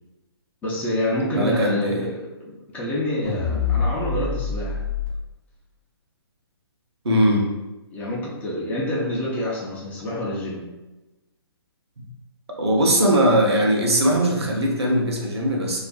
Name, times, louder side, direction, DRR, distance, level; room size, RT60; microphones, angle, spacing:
voice 1, 0.6-4.8 7.9-10.7, left 1 dB, 10° left, -5 dB, 0.4 m, -27 dB
voice 2, 1.3-2.0 7.0-7.5 12.6-15.8, equal, 85° right, 0 dB, 0.7 m, -20 dB
sound 1, 3.2-5.1, left 5 dB, 35° left, 0.8 m, -25 dB
2.5 x 2.4 x 2.2 m, 1.0 s
figure-of-eight pair, 135°, 13 cm